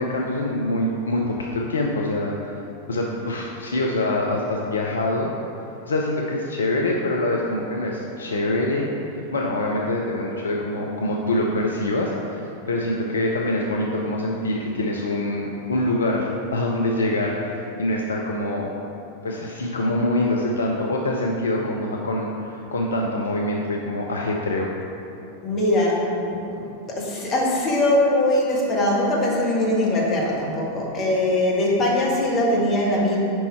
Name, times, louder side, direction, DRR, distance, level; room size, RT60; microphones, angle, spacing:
voice 1, 0.0-2.6 2.9-5.3 5.9-12.4 12.7-18.7 19.2-24.7, left 1 dB, 70° left, -1 dB, 0.4 m, -25 dB
voice 2, 25.4-33.2, left 1 dB, 30° left, -4 dB, 1.3 m, -21 dB
5.2 x 4.6 x 4.4 m, 2.7 s
figure-of-eight pair, 90°, 0 cm